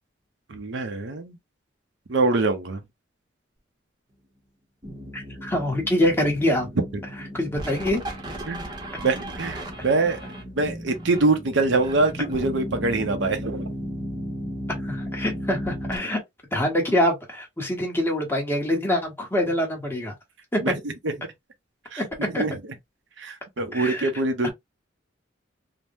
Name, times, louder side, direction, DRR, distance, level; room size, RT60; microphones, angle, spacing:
voice 1, 0.5-1.4 2.1-2.8 8.5-8.6 9.0-10.2 10.6-13.7 20.6-21.1 21.9-22.6 23.2-24.5, right 3 dB, 65° right, 0.6 m, -24 dB
sound 1, 4.8-16.0, equal, 25° right, 0.8 m, -35 dB
voice 2, 5.1-6.7 7.3-8.0 14.8-16.2 16.5-20.1 20.5-20.7 22.0-22.1 22.3-22.4 23.7-24.1, left 1 dB, 10° left, 1.0 m, -24 dB
3.4 x 2.1 x 2.6 m
head